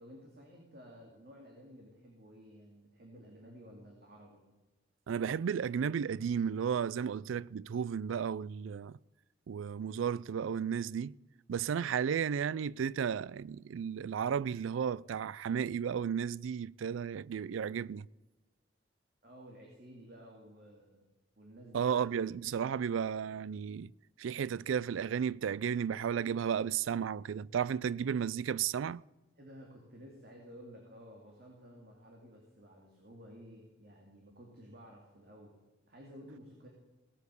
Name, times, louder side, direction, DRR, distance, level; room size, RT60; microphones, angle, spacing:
voice 1, 0.0-4.4 19.2-21.0 21.4-21.9 29.4-35.6 35.9-36.7, equal, 50° right, 2.7 m, -53 dB
voice 2, 5.1-9.0 9.5-11.1 11.5-18.1 21.7-23.9 24.2-29.0, right 7 dB, 85° right, 0.4 m, -33 dB
17.5 x 8.3 x 6.9 m
head